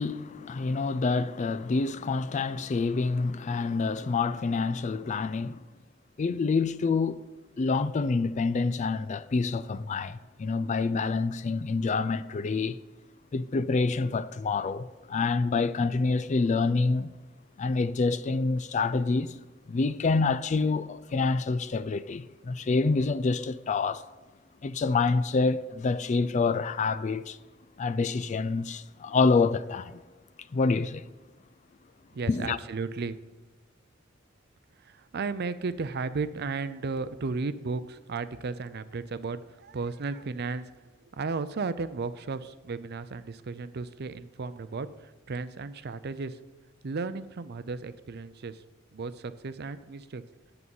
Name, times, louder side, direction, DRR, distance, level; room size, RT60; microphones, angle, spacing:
voice 1, 0.0-5.6 6.2-7.2 7.6-12.8 13.3-17.2 17.6-19.4 19.7-24.0 24.6-27.4 27.8-30.0 30.5-31.1 32.3-32.6, left 4 dB, 35° left, 0.4 m, -27 dB
voice 2, 32.1-33.2 34.8-40.7 41.1-46.4 46.8-48.6 48.9-50.2, right 4 dB, 55° right, 0.5 m, -34 dB
8.5 x 7.9 x 5.4 m
head